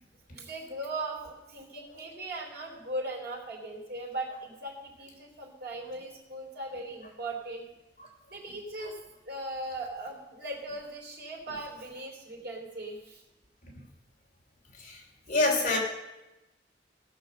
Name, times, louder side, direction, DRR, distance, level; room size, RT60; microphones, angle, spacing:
voice 1, 0.3-7.6 8.3-9.0 9.2-13.2, right 2 dB, 65° right, 0 dB, 3.1 m, -39 dB
voice 2, 15.3-15.8, left 2 dB, 45° left, -2 dB, 3.1 m, -27 dB
17.0 x 6.6 x 6.5 m, 1.0 s
head